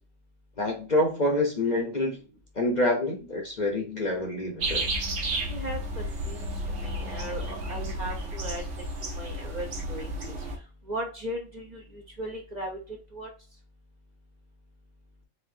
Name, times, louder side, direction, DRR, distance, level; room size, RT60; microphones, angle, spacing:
voice 1, 0.6-2.2 2.5-4.9, left 1 dB, 40° left, 1 dB, 0.8 m, -27 dB
sound 1, 4.6-10.6, right 1 dB, 65° right, 1.3 m, -32 dB
voice 2, 5.5-8.6 9.0-10.4 10.9-12.8 13.1-13.3, right 1 dB, 40° right, 1 dB, 0.8 m, -37 dB
4.3 x 3.5 x 2.6 m, 0.36 s
omnidirectional pair, 1.3 m